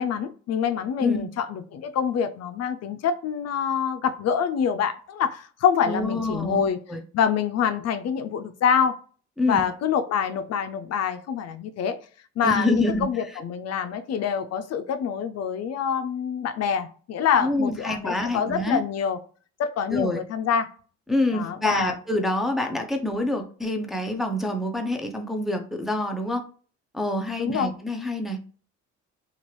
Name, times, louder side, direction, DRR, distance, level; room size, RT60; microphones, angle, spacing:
voice 1, 0.0-6.8 7.1-8.9 9.4-12.0 12.4-19.2 19.6-20.7 21.3-21.9 27.4-27.7, left 7 dB, 60° left, 9 dB, 0.4 m, -26 dB
voice 2, 5.9-7.0 9.4-9.6 12.4-13.1 17.4-18.8 19.9-20.2 21.1-26.4 26.9-28.4, left 1 dB, ahead, 3 dB, 0.5 m, -26 dB
2.9 x 2.4 x 3.0 m, 0.40 s
cardioid pair, 90°, 30 cm